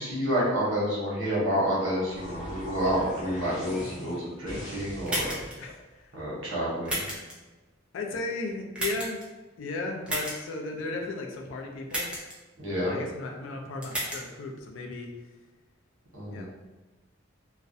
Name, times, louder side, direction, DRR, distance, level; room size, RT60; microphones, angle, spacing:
voice 1, 0.0-5.4 6.1-7.0 12.6-12.9 16.1-16.5, equal, 85° right, -6 dB, 0.9 m, -29 dB
sound 1, 1.2-5.8, equal, 40° left, 0.6 m, -42 dB
sound 2, 5.1-5.5 6.9-7.3 8.8-9.2 10.1-10.4 11.9-12.3 13.8-14.2, right 1 dB, 5° right, 0.5 m, -31 dB
voice 2, 5.6-6.1 7.9-9.2 9.6-12.1 12.8-15.1 16.3-16.5, left 3 dB, 75° left, 2 dB, 0.4 m, -35 dB
2.4 x 2.0 x 2.6 m, 1.2 s
head